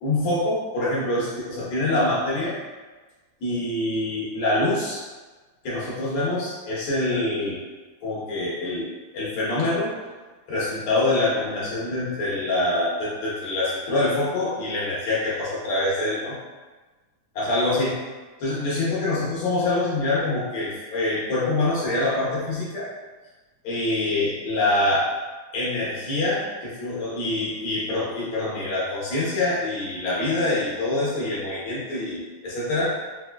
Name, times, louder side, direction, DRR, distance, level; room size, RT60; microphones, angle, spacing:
voice 1, 0.0-2.5 3.4-5.0 5.6-7.6 8.0-9.9 10.5-16.3 17.3-18.0 18.4-22.9 23.6-25.0 25.5-32.9, left 2 dB, 65° left, -7 dB, 1.4 m, -25 dB
4.7 x 2.7 x 2.2 m, 1.3 s
omnidirectional pair, 3.4 m